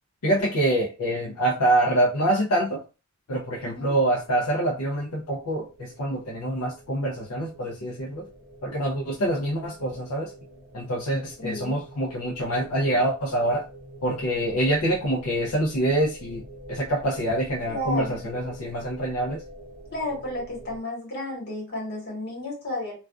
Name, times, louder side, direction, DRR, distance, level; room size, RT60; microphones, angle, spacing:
voice 1, 0.2-2.8 3.3-8.3 8.6-10.3 10.7-13.7 14.0-16.4 16.7-19.4, right 1 dB, 75° left, -2 dB, 0.6 m, -25 dB
sound 1, 3.3-20.8, right 2 dB, 15° right, 0.9 m, -47 dB
voice 2, 11.4-11.8 17.7-18.2 19.9-22.9, left 1 dB, 50° left, -3 dB, 1.3 m, -32 dB
2.4 x 2.3 x 2.2 m, 0.30 s
head